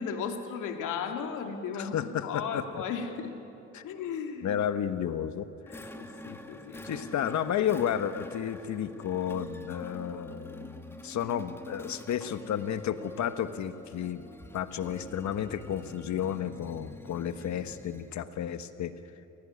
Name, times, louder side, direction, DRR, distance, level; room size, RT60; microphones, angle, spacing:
voice 1, 0.0-3.3 3.8-4.6 5.9-7.1, left 6 dB, 85° left, 4 dB, 2.6 m, -36 dB
voice 2, 1.7-2.6 3.7-3.8 4.4-5.8 6.3-6.4 6.8-14.2 14.5-18.9, left 9 dB, 70° left, 10 dB, 1.4 m, -32 dB
sound 1, 5.7-18.2, left 1 dB, 10° left, 2.0 m, -46 dB
28.5 x 17.0 x 9.9 m, 2.8 s
cardioid pair, 90°, 30 cm